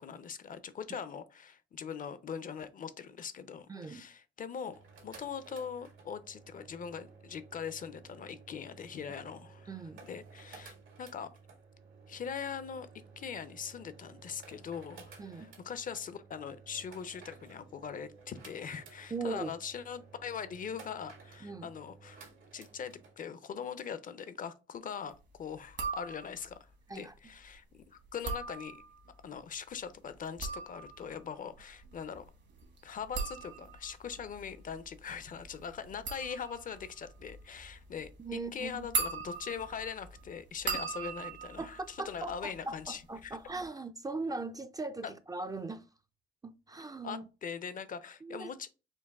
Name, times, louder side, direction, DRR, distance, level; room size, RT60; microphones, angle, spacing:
voice 1, 0.0-11.3 12.1-12.9 13.2-22.2 22.5-28.8 29.2-32.3 32.8-43.4 45.0-45.1 47.0-48.7, left 7 dB, 45° left, 0.5 m, -42 dB
voice 2, 3.7-4.1 9.7-10.0 15.2-15.5 19.1-19.6 21.4-21.7 26.9-27.1 38.2-38.9 41.6-45.9 46.4-47.3 48.2-48.5, right 3 dB, 20° right, 0.3 m, -39 dB
sound 1, 4.6-23.1, right 4 dB, 85° right, 1.5 m, -55 dB
sound 2, 25.7-26.5 28.1-29.1 30.1-42.8 43.1-43.7, right 4 dB, 65° right, 1.3 m, -40 dB
4.6 x 2.6 x 3.5 m
cardioid pair, 90°, 20 cm